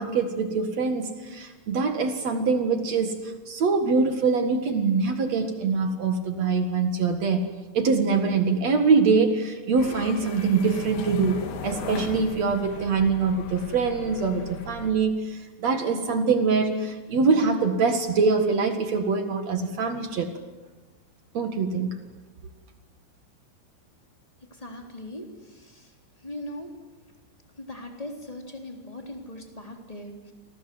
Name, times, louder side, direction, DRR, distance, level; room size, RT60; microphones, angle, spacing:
voice 1, 0.0-7.4 7.7-20.3 21.3-22.0, right 4 dB, 50° right, 7 dB, 2.2 m, -24 dB
sound 1, 9.8-14.9, left 4 dB, 75° left, 4.6 m, -37 dB
voice 2, 24.6-25.9 26.2-26.7 27.6-30.3, left 1 dB, 10° left, 3 dB, 2.8 m, -39 dB
30.0 x 23.5 x 7.9 m, 1.2 s
omnidirectional pair, 5.4 m